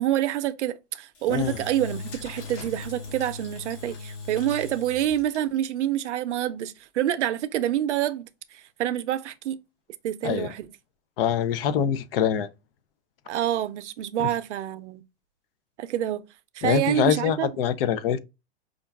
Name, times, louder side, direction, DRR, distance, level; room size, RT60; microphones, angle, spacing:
voice 1, 0.0-9.6 10.0-10.7 13.3-15.0 15.8-16.2 16.5-17.5, right 12 dB, 85° right, 0.6 m, -27 dB
Engine / Drill, 1.1-5.7, left 4 dB, 40° left, 2.1 m, -39 dB
voice 2, 11.2-12.5 14.2-14.3 16.6-18.2, left 9 dB, 55° left, 0.5 m, -24 dB
5.1 x 2.4 x 2.2 m
supercardioid pair, 145°, 34 cm